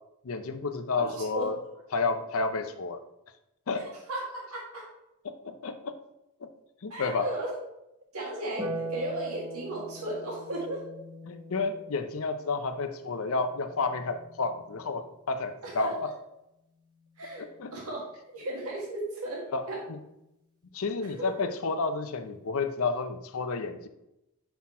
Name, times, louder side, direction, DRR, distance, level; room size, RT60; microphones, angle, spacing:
voice 1, 0.2-1.6 1.9-3.0 3.7-3.8 5.2-6.0 6.4-6.5 6.8-7.3 11.2-15.9 17.4-17.7 19.5-19.6 20.7-23.9, left 4 dB, 75° left, 8 dB, 0.6 m, -31 dB
voice 2, 1.0-1.5 3.7-4.9 6.9-7.5 8.1-10.9 15.6-16.1 17.2-19.8 21.2-21.3, right 1 dB, 90° right, -3 dB, 1.8 m, -35 dB
Harp, 8.6-15.1 16.7-17.7, right 1 dB, 20° right, 1.0 m, -42 dB
5.7 x 4.2 x 4.2 m, 0.87 s
head